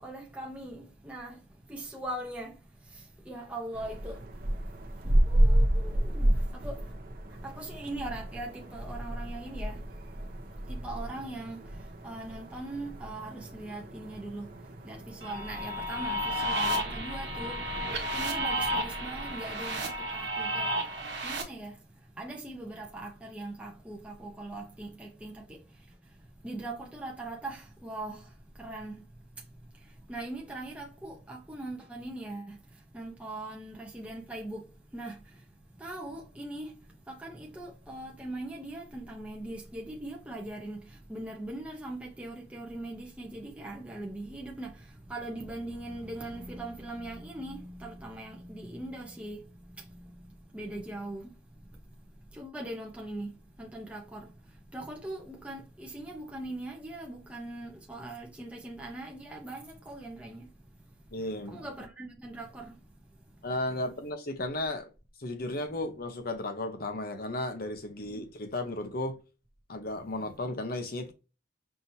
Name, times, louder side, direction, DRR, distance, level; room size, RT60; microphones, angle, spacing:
voice 1, 0.0-6.9 7.3-61.1 61.5-63.5 68.0-68.3, right 1 dB, 5° right, 0.7 m, -41 dB
sound 1, 3.7-16.1, right 1 dB, 50° right, 0.7 m, -31 dB
sound 2, 15.2-21.4, equal, 65° right, 1.1 m, -32 dB
voice 2, 61.1-61.7 63.4-64.9 65.2-69.2 69.7-71.1, left 2 dB, 50° left, 0.8 m, -34 dB
5.6 x 2.9 x 2.7 m
head